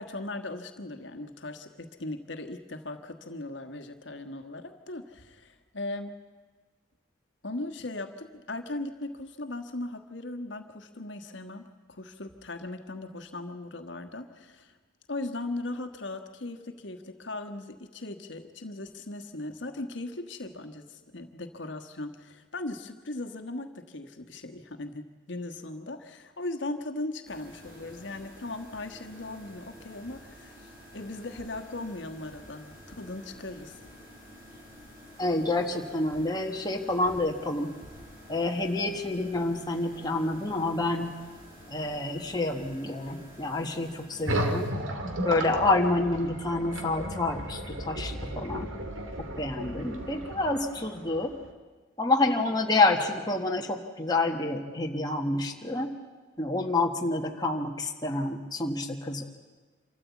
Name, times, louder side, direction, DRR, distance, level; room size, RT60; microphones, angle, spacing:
voice 1, 0.0-6.1 7.4-14.8 15.1-33.8, left 2 dB, 65° left, 6 dB, 1.4 m, -38 dB
sound 1, 27.2-44.7, equal, 50° right, 5.5 m, -50 dB
voice 2, 35.2-37.7 38.3-41.1 41.7-44.7 45.2-48.7 49.2-51.4 52.0-55.9 56.4-59.2, left 2 dB, 20° left, 1 dB, 1.4 m, -28 dB
sound 2, 44.3-51.5, right 1 dB, 90° right, 2.1 m, -34 dB
26.0 x 13.5 x 8.3 m, 1.4 s
head